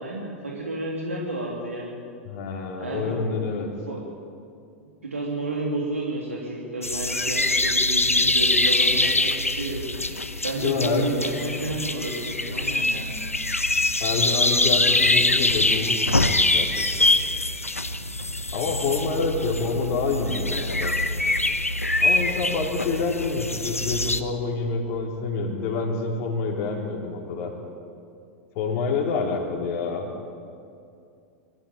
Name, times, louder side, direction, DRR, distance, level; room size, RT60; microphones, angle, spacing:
voice 1, 0.0-2.0 2.8-3.2 3.9-4.0 4.8-9.8 10.4-13.1, right 2 dB, 80° right, -3 dB, 2.9 m, -31 dB
voice 2, 2.2-3.7 10.6-11.1 14.0-16.1 16.5-17.1 18.5-20.9 22.0-27.5 28.6-30.1, left 4 dB, 45° left, 1 dB, 3.9 m, -27 dB
sound 1, 6.8-24.2, left 2 dB, 85° left, 0.9 m, -24 dB
23.5 x 13.5 x 8.9 m, 2.4 s
figure-of-eight pair, 90°, 7 cm